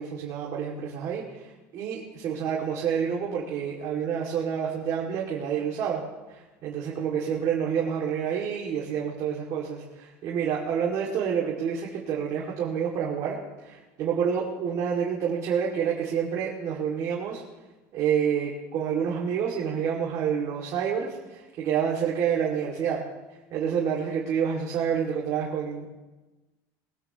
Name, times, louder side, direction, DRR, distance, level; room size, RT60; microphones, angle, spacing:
voice 1, 0.0-6.0 6.3-17.4 17.9-23.0 23.5-25.9, right 7 dB, 50° right, -3 dB, 2.3 m, -28 dB
20.5 x 16.0 x 3.0 m, 1.1 s
cardioid pair, 145°, 8 cm